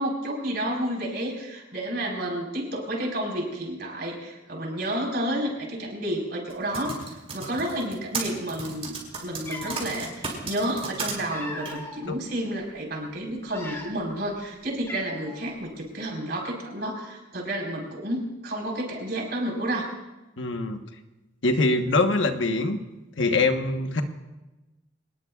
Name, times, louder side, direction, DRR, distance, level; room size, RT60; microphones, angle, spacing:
voice 1, 0.0-9.0 9.2-19.9, right 1 dB, 60° right, 0 dB, 4.6 m, -30 dB
Typing, 6.5-11.1 11.6-11.7, right 4 dB, 35° right, 4.5 m, -33 dB
Cat, 9.4-9.9 10.9-12.1 12.6-12.8 13.4-14.2 14.4-14.5 14.9-15.5, left 2 dB, 15° left, 2.2 m, -39 dB
voice 2, 20.4-20.8 21.4-22.8 23.2-24.0, left 2 dB, 75° left, 6 dB, 1.2 m, -23 dB
26.0 x 19.5 x 2.4 m, 1.1 s
head